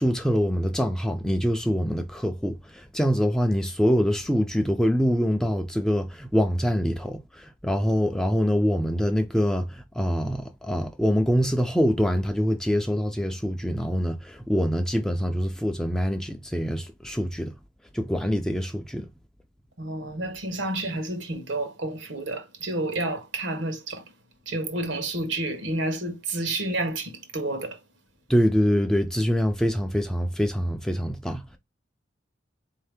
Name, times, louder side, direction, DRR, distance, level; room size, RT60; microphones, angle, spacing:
voice 1, 0.0-17.5 17.9-19.1 28.3-31.6, equal, 5° left, 0.4 m, -25 dB
voice 2, 19.8-24.0 24.5-27.8, right 2 dB, 70° right, 1.0 m, -30 dB
4.0 x 2.7 x 3.4 m
head